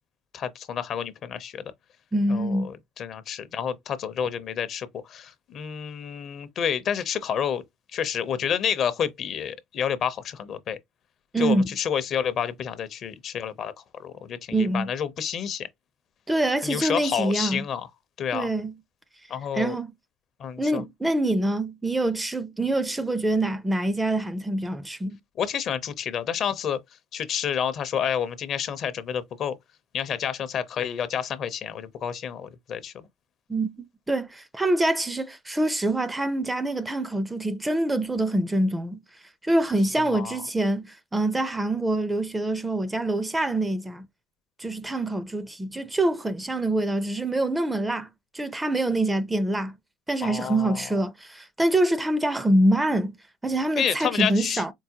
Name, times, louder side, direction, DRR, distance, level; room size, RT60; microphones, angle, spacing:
voice 1, 0.3-1.6 2.3-7.6 7.9-10.8 11.4-13.7 14.0-15.7 16.6-17.9 18.2-18.5 19.3-19.8 20.4-20.8 25.4-26.8 27.1-29.6 29.9-32.9 40.1-40.4 50.2-50.8 53.8-54.6, left 8 dB, 50° left, 0.6 m, -29 dB
voice 2, 2.1-2.7 11.3-11.7 14.5-14.9 16.3-17.6 18.3-18.7 19.5-19.9 20.6-25.2 33.5-33.7 34.1-39.0 39.4-44.1 44.6-48.1 48.3-49.8 50.1-53.1 53.4-54.7, right 1 dB, 10° right, 0.4 m, -25 dB
4.6 x 2.0 x 2.8 m
supercardioid pair, 105°, 0 cm